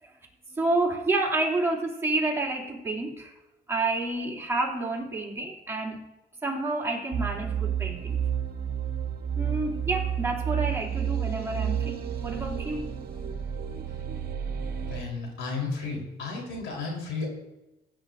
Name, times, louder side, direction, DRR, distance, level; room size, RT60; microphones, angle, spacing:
voice 1, 0.5-3.3 3.7-6.0 6.4-8.2 9.4-12.9, right 2 dB, 15° right, -3 dB, 2.7 m, -29 dB
sound 1, 7.1-15.0, right 8 dB, 50° right, 1.3 m, -30 dB
voice 2, 14.8-17.3, left 4 dB, 80° left, 0 dB, 3.9 m, -33 dB
16.0 x 9.1 x 2.6 m, 0.94 s
cardioid pair, 90°, 20 cm